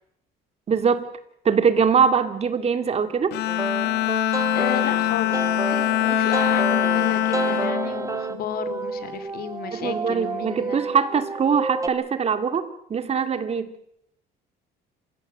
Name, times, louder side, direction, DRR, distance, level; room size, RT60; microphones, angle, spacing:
voice 1, 0.7-1.1 1.4-3.4 9.7-13.7, right 6 dB, 40° right, 11 dB, 2.3 m, -22 dB
Bowed string instrument, 3.3-8.8, left 16 dB, 80° left, 1.1 m, -24 dB
sound 1, 3.5-11.9, right 4 dB, 20° right, 1.6 m, -30 dB
voice 2, 4.5-10.8, left 9 dB, 65° left, 12 dB, 2.9 m, -33 dB
27.5 x 16.0 x 7.8 m, 0.72 s
cardioid pair, 110°, 17 cm